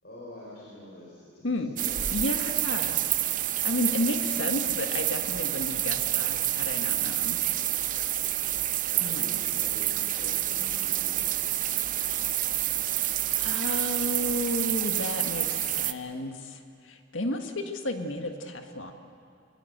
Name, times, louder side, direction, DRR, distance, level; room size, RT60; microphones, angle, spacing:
voice 1, 0.0-2.1 8.9-11.4, left 1 dB, 55° left, -5 dB, 4.8 m, -46 dB
voice 2, 1.4-1.8 2.1-3.0 3.6-7.4 9.0-9.3 13.4-18.9, left 1 dB, 70° left, 5 dB, 1.8 m, -32 dB
sound 1, 1.8-15.9, right 13 dB, 40° right, 0.7 m, -28 dB
22.5 x 21.5 x 8.1 m, 2.4 s
head